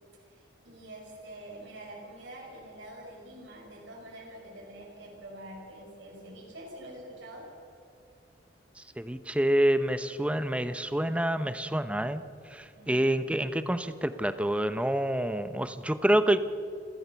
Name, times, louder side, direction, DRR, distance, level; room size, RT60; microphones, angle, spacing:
voice 1, 0.2-7.5 12.8-13.3, right 1 dB, 85° right, -2 dB, 5.2 m, -46 dB
voice 2, 9.0-12.2 12.5-16.4, right 1 dB, 5° right, 12 dB, 0.8 m, -27 dB
27.5 x 13.5 x 7.0 m, 2.4 s
head